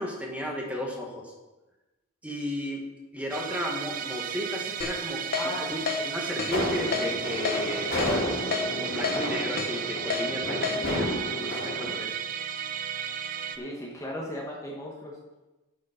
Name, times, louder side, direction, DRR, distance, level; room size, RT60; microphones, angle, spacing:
voice 1, 0.0-1.3 2.2-2.8 3.1-5.2 5.6-5.8 6.1-8.5 8.8-12.1, equal, 5° right, -1 dB, 1.4 m, -34 dB
Musical instrument, 3.3-13.6, right 8 dB, 40° right, 0.5 m, -34 dB
Keyboard (musical), 4.8-4.9 5.3-5.5 5.9-6.0 6.4-6.5 6.9-7.1 7.5-7.6 8.0-8.1 8.5-8.7 9.0-9.2 9.6-9.7 10.1-10.2 10.6-10.8, left 6 dB, 50° left, 1.0 m, -29 dB
voice 2, 5.3-6.1 13.5-15.2, left 1 dB, 15° left, -3 dB, 1.2 m, -36 dB
sound 1, 6.4-11.9, left 1 dB, 75° left, 2.8 m, -31 dB
11.0 x 5.3 x 5.0 m, 1.1 s
head